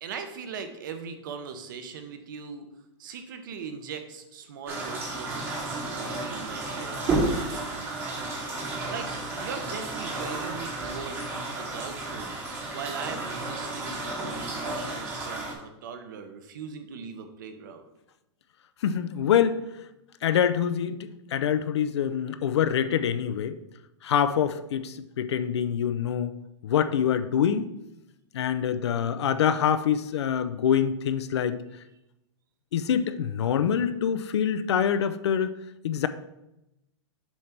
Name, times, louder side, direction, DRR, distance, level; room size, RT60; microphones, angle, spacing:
voice 1, 0.0-2.7 3.0-7.9 8.9-11.3 11.6-12.3 12.7-17.9, right 6 dB, 45° right, 8 dB, 0.8 m, -40 dB
sound 1, 4.7-15.5, right 2 dB, 15° right, 1.0 m, -32 dB
voice 2, 18.8-19.6 20.2-21.0 21.3-23.6 24.0-26.3 26.6-27.7 28.3-31.6 32.7-35.6 35.8-36.1, left 8 dB, 65° left, 12 dB, 0.5 m, -25 dB
7.2 x 3.3 x 5.8 m, 0.88 s
supercardioid pair, 175°, 15 cm